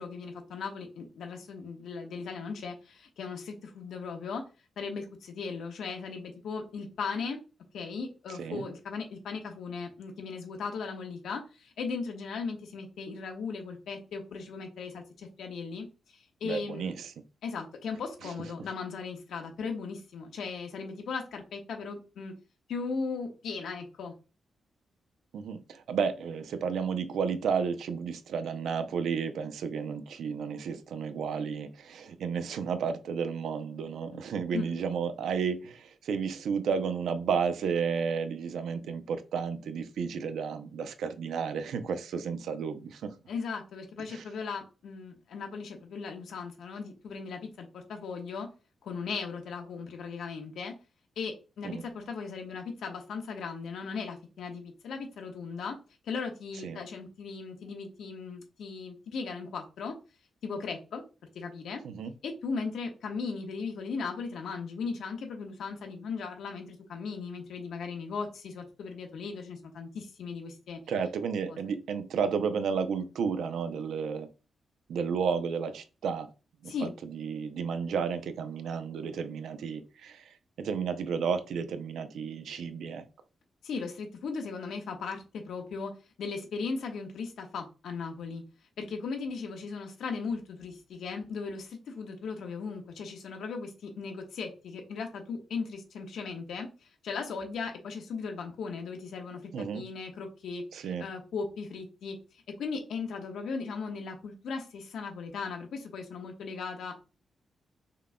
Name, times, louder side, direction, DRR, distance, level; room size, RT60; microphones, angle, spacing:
voice 1, 0.0-4.4 4.8-7.4 7.7-15.9 16.1-16.9 17.4-22.3 22.7-24.1 34.1-34.2 34.5-34.7 43.3-48.5 48.8-50.7 51.2-55.8 56.0-59.9 60.4-61.0 61.3-61.8 62.2-70.8 71.5-71.6 76.7-76.9 83.6-85.9 86.2-88.4 88.8-96.7 97.0-102.2 102.6-107.0, left 5 dB, 85° left, 1.2 m, -37 dB
voice 2, 16.4-17.1 25.3-43.1 44.1-44.2 51.6-51.8 56.6-56.8 61.8-62.1 70.9-74.3 74.9-76.3 76.6-83.0 99.5-99.8 100.7-101.0, right 6 dB, 85° right, 0.6 m, -32 dB
5.5 x 3.7 x 2.2 m
wide cardioid pair, 155°, 0 cm